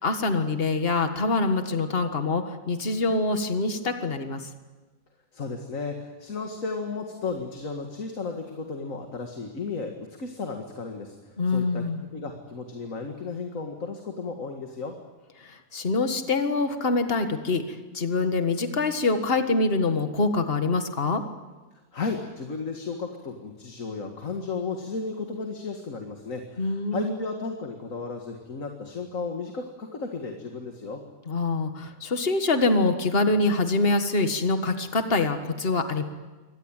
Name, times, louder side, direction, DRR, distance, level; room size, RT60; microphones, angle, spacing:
voice 1, 0.0-4.5 11.4-12.0 15.4-21.2 26.6-27.1 31.3-36.0, left 3 dB, 45° left, 7 dB, 1.9 m, -25 dB
voice 2, 5.3-11.8 12.1-15.0 21.9-31.0, left 4 dB, 65° left, 3 dB, 2.3 m, -34 dB
24.0 x 19.0 x 9.0 m, 1.2 s
omnidirectional pair, 1.5 m